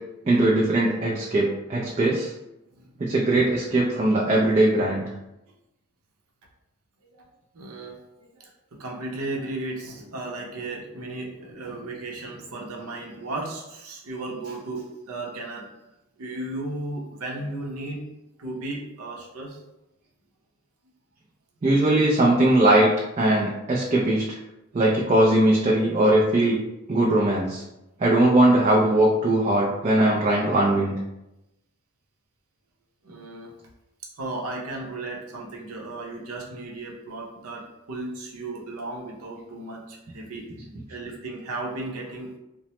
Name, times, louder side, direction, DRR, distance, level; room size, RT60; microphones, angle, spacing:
voice 1, 0.3-2.3 3.0-5.0 21.6-22.9 23.2-24.2 24.7-26.6 26.9-27.6 28.0-31.0, right 1 dB, 30° right, -4 dB, 0.3 m, -20 dB
voice 2, 7.5-15.7 16.2-18.0 18.4-19.6 33.0-33.5 34.2-40.5 40.9-42.3, right 2 dB, 85° right, -1 dB, 0.7 m, -35 dB
3.0 x 2.0 x 2.9 m, 0.92 s
head